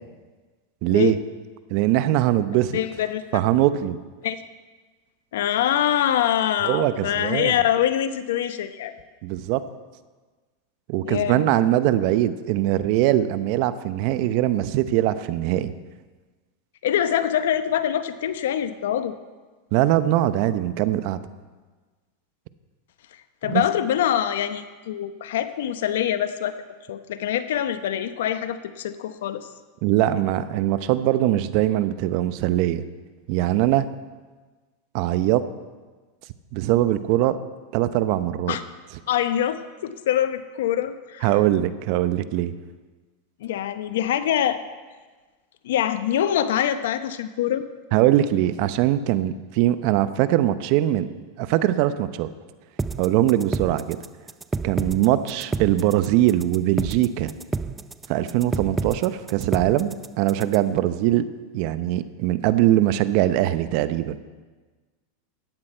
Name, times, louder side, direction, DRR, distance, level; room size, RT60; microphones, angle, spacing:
voice 1, 0.8-1.2 1.7-2.8 3.3-4.0 6.6-7.5 9.2-9.6 10.9-15.7 19.7-21.2 23.5-23.6 29.8-32.8 33.3-33.8 34.9-35.4 36.5-37.4 37.7-38.6 41.2-42.5 47.9-51.1 51.4-52.3 53.0-54.0 54.6-57.3 58.1-61.2 61.5-64.2, right 13 dB, 55° right, 13 dB, 0.7 m, -21 dB
voice 2, 2.7-3.2 4.2-4.4 5.3-8.9 11.0-11.5 16.8-19.1 23.4-26.5 26.9-29.5 38.5-38.6 39.1-41.3 43.4-44.6 45.6-47.7, left 10 dB, 80° left, 11 dB, 0.8 m, -24 dB
sound 1, 52.8-60.8, right 4 dB, 15° right, 0.5 m, -30 dB
15.0 x 9.9 x 4.5 m, 1.3 s
hypercardioid pair, 115°, 0 cm